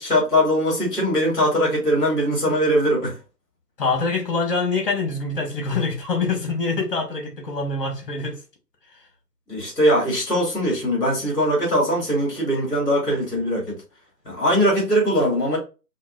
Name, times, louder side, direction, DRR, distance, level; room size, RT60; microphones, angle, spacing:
voice 1, 0.0-3.1 9.5-13.6 14.2-15.6, equal, 15° left, 2.3 m, -21 dB
voice 2, 3.8-8.4, left 4 dB, 35° left, 1.4 m, -25 dB
5.6 x 2.6 x 2.4 m
figure-of-eight pair, 155°, 49 cm